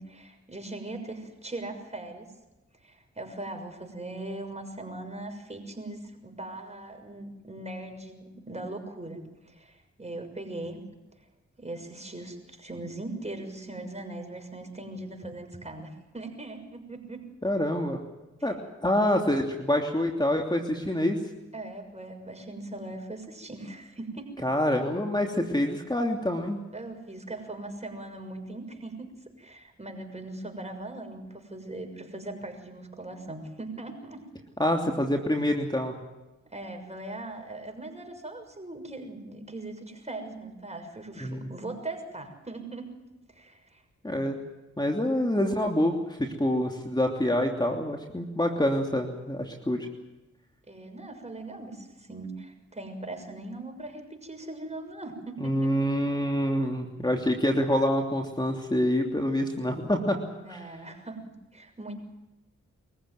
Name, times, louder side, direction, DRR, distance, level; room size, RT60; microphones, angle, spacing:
voice 1, 0.0-2.3 2.8-10.8 11.6-17.2 18.4-18.5 21.5-24.4 26.7-29.1 29.4-34.2 36.5-42.9 43.3-43.8 50.7-55.9 60.4-61.2 61.5-61.9, right 2 dB, 20° right, 4 dB, 6.4 m, -40 dB
voice 2, 17.4-18.0 18.4-21.2 24.4-26.6 34.6-35.9 41.2-41.5 44.0-44.4 44.8-49.9 55.4-60.2 60.5-60.6, left 1 dB, 15° left, 2 dB, 3.1 m, -26 dB
23.5 x 15.0 x 9.5 m, 1.1 s
supercardioid pair, 40°, 30 cm